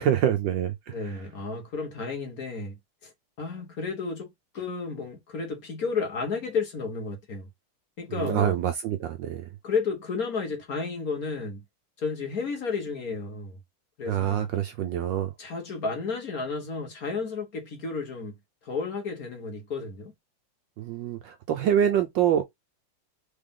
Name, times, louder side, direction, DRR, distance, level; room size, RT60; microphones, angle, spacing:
voice 1, 0.0-1.2 8.1-9.4 14.1-15.3 20.8-22.4, right 10 dB, 70° right, 1.1 m, -26 dB
voice 2, 0.9-7.5 8.0-8.6 9.6-11.6 12.0-13.6 14.0-14.5 15.4-18.3 18.6-20.1, left 4 dB, 50° left, 1.3 m, -32 dB
4.0 x 3.4 x 3.6 m
omnidirectional pair, 2.4 m